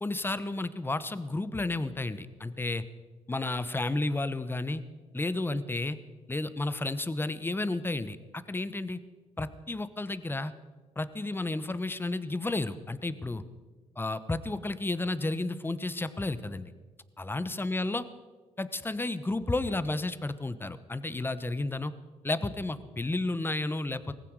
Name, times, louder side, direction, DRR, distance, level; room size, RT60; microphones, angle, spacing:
voice 1, 0.0-2.8 3.3-4.8 5.1-6.0 6.3-9.0 9.4-10.5 11.0-13.4 14.0-16.7 17.2-18.0 18.6-21.9 22.2-24.1, left 2 dB, 15° left, 14 dB, 1.0 m, -32 dB
18.5 x 15.5 x 4.8 m, 1.3 s
supercardioid pair, 70°, 13 cm